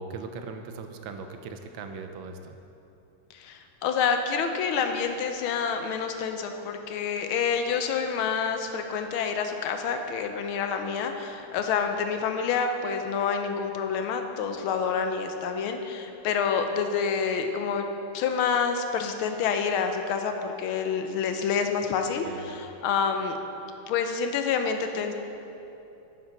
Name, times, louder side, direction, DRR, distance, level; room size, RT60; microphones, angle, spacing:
voice 1, 0.0-2.6 22.2-22.4, right 4 dB, 80° right, 6 dB, 1.4 m, -39 dB
voice 2, 3.3-17.9 18.1-23.4 23.9-25.1, left 6 dB, 90° left, 6 dB, 1.5 m, -28 dB
8.7 x 7.3 x 5.1 m, 2.8 s
omnidirectional pair, 2.2 m